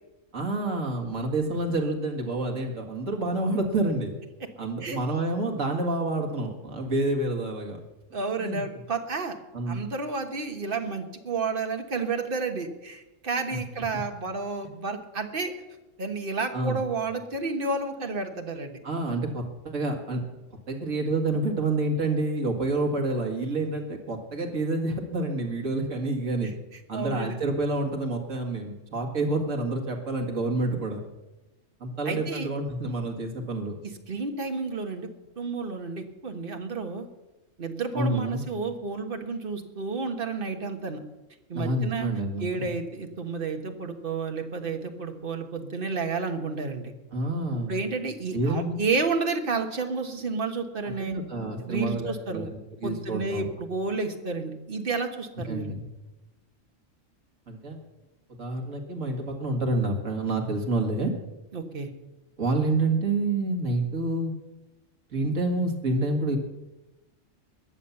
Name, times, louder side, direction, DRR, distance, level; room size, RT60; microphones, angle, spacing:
voice 1, 0.3-4.2 4.6-7.8 8.4-8.6 9.5-9.8 13.5-13.6 16.5-16.8 18.8-20.2 20.7-26.5 26.9-31.0 31.8-33.8 37.9-38.4 41.5-42.7 47.1-47.8 48.3-48.8 51.0-53.5 55.5-55.8 57.5-57.8 58.4-61.1 62.4-64.3 65.1-66.4, right 2 dB, 75° right, 1 dB, 2.2 m, -28 dB
voice 2, 8.1-9.4 9.7-15.5 16.0-18.8 25.8-25.9 26.4-27.4 32.0-32.5 33.8-35.1 35.4-37.1 37.6-41.0 41.5-42.1 42.4-46.9 47.5-51.2 51.6-52.5 52.8-55.7 61.5-61.9, right 4 dB, 45° right, 5 dB, 1.5 m, -31 dB
21.0 x 7.2 x 7.0 m, 1.0 s
omnidirectional pair, 1.3 m